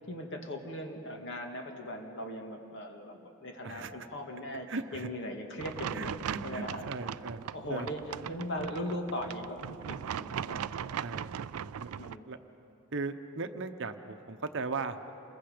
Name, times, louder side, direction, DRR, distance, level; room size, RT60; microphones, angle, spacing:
voice 1, 0.1-6.1 6.4-6.8 7.5-8.0 8.3-11.3 12.0-12.2, left 1 dB, 55° left, 3 dB, 2.0 m, -39 dB
voice 2, 4.7-5.1 5.9-7.4 7.7-7.9 11.0-11.3 11.8-11.9 12.3-12.4 12.9-15.0, right 4 dB, 55° right, 8 dB, 0.9 m, -37 dB
sound 1, 5.6-12.2, right 8 dB, 75° right, 0.4 m, -39 dB
28.5 x 21.5 x 5.1 m, 2.9 s
head